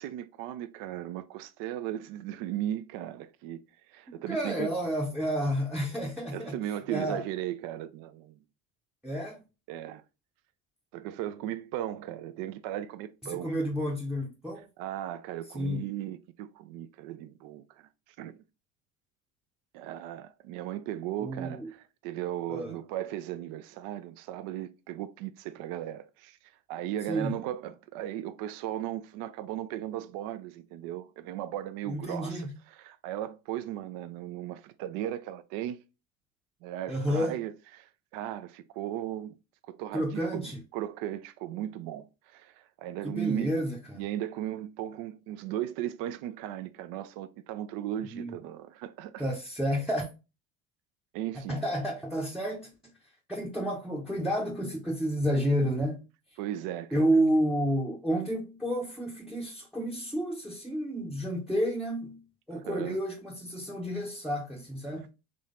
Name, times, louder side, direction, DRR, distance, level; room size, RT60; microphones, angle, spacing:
voice 1, 0.0-3.6 3.9-4.7 6.3-8.4 9.7-10.0 10.9-13.5 14.8-18.4 19.7-35.8 36.6-39.4 39.7-43.5 43.9-49.3 51.1-51.6 56.4-57.2 62.5-63.0, right 12 dB, 55° right, 0.5 m, -37 dB
voice 2, 4.1-6.6 6.9-7.2 9.0-9.4 13.3-14.6 15.5-15.9 21.2-21.7 22.5-22.7 27.1-27.4 31.9-32.5 36.9-37.3 39.9-40.6 43.0-44.0 48.1-48.3 49.2-50.1 51.5-52.7 53.3-56.0 56.9-62.2 62.5-65.1, equal, ahead, 0.7 m, -30 dB
3.8 x 3.1 x 3.6 m
hypercardioid pair, 70°, 41 cm